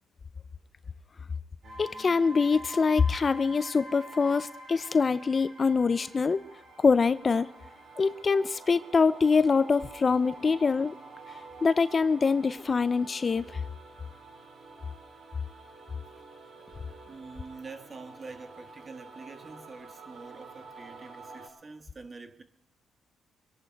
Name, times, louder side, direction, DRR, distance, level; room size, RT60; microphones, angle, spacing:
sound 1, 1.6-21.5, right 2 dB, 70° right, 4.8 m, -47 dB
voice 1, 1.8-6.4 6.8-7.5 8.0-11.0 11.6-13.6, left 5 dB, 35° left, 0.5 m, -24 dB
voice 2, 17.1-22.4, right 4 dB, 35° right, 1.5 m, -46 dB
25.0 x 11.0 x 4.6 m
cardioid pair, 90°, 0 cm